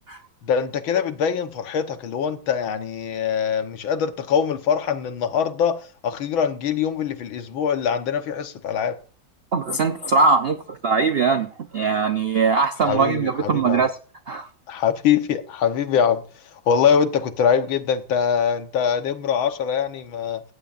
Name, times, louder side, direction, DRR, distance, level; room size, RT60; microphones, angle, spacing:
voice 1, 0.4-9.0 12.8-13.8 14.7-16.2 16.7-20.4, left 7 dB, 85° left, 2.0 m, -23 dB
voice 2, 9.5-14.0 14.3-14.5, right 4 dB, 50° right, 0.7 m, -21 dB
16.0 x 15.5 x 2.5 m
omnidirectional pair, 2.1 m